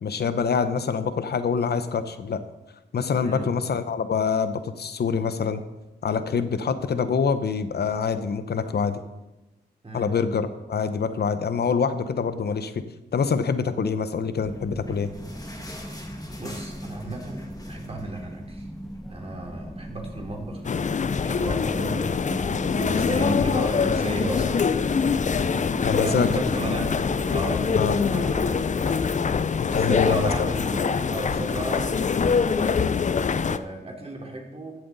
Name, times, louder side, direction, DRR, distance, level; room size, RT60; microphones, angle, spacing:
voice 1, 0.0-2.4 2.9-5.6 6.0-9.0 9.9-12.8 13.1-15.1 25.8-26.3 27.8-28.0 29.6-30.5, left 6 dB, 65° left, 12 dB, 0.9 m, -25 dB
sound 1, 14.4-29.8, equal, ahead, 0.9 m, -38 dB
sound 2, 14.5-19.2 19.5-19.6 19.9-20.1 20.7-20.8, left 1 dB, 20° left, 1.9 m, -45 dB
voice 2, 16.4-18.7 19.1-20.6 21.2-24.7 26.0-26.9 27.3-28.7 29.7-32.7 33.1-34.7, right 1 dB, 35° right, 0 dB, 3.0 m, -34 dB
sound 3, 20.6-33.6, left 5 dB, 40° left, 0.5 m, -24 dB
15.0 x 7.7 x 4.1 m, 1.0 s
cardioid pair, 60°, 18 cm